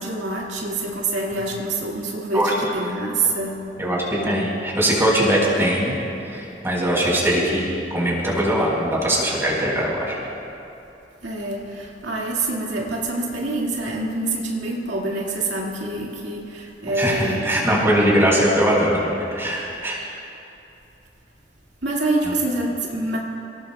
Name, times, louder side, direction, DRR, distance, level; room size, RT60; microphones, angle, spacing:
voice 1, 0.0-3.6 11.2-18.1 21.8-23.2, right 2 dB, 85° right, -3 dB, 2.2 m, -26 dB
voice 2, 3.8-6.0 6.3-7.6 7.9-10.2 16.9-20.0, equal, 15° right, -5 dB, 4.5 m, -21 dB
30.0 x 18.0 x 2.3 m, 2.8 s
head